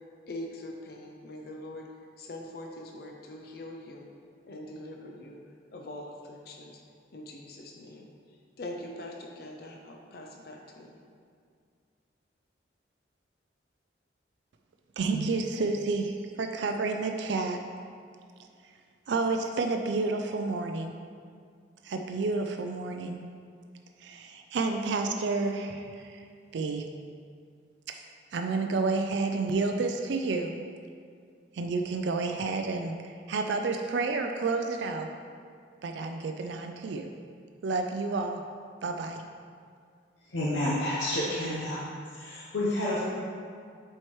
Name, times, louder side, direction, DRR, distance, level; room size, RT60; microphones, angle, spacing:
voice 1, 0.3-1.9 2.2-4.1 4.5-5.4 5.7-6.8 7.1-8.1 8.6-11.0, left 1 dB, 50° left, 1 dB, 0.5 m, -42 dB
voice 2, 15.0-17.6 19.1-20.9 21.8-23.2 24.0-26.2 26.5-26.8 27.9-28.0 28.3-30.6 31.5-35.1 35.8-37.1 37.6-38.4 38.8-39.2, right 3 dB, 70° right, 4 dB, 0.4 m, -30 dB
voice 3, 40.3-41.8 42.1-43.0, left 1 dB, 75° left, -6 dB, 0.8 m, -29 dB
7.7 x 4.4 x 3.1 m, 2.2 s
head